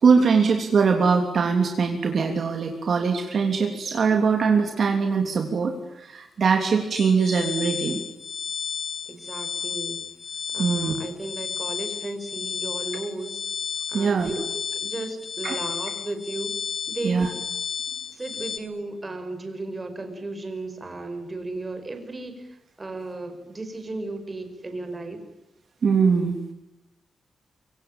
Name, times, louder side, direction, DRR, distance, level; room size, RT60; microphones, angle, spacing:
voice 1, 0.0-8.0 10.6-10.9 13.9-14.3 15.4-15.6 17.0-17.3 25.8-26.4, right 5 dB, 50° right, 4 dB, 3.2 m, -22 dB
sound 1, 6.9-18.6, left 7 dB, 50° left, 2.4 m, -32 dB
voice 2, 9.1-10.0 10.5-13.4 13.9-16.6 16.9-17.3 18.1-25.2, right 2 dB, 20° right, 7 dB, 5.2 m, -35 dB
25.0 x 25.0 x 9.0 m, 0.87 s
wide cardioid pair, 155°, 0 cm